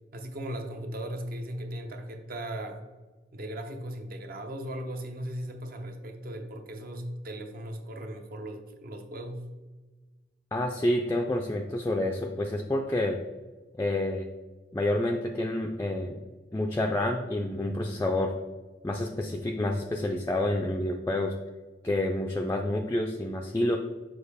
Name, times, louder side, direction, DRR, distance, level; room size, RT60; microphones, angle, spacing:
voice 1, 0.1-2.9 3.3-9.4, right 1 dB, 55° right, 5 dB, 0.7 m, -37 dB
voice 2, 10.5-13.2 13.7-14.3 14.7-16.2 16.5-18.3 18.8-21.3 21.8-23.8, left 1 dB, 15° left, 1 dB, 0.3 m, -28 dB
6.4 x 4.6 x 3.5 m, 1.3 s
head